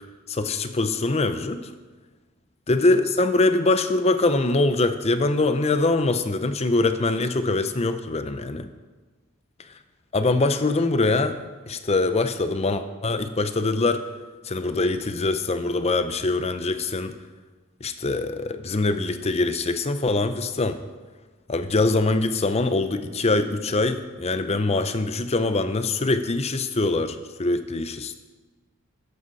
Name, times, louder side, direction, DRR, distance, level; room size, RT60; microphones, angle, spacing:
voice 1, 0.3-1.7 2.7-8.7 10.1-11.4 11.7-14.0 14.4-17.1 17.8-20.8 21.5-28.1, left 2 dB, 30° left, 10 dB, 0.6 m, -23 dB
13.5 x 9.9 x 4.1 m, 1.3 s
head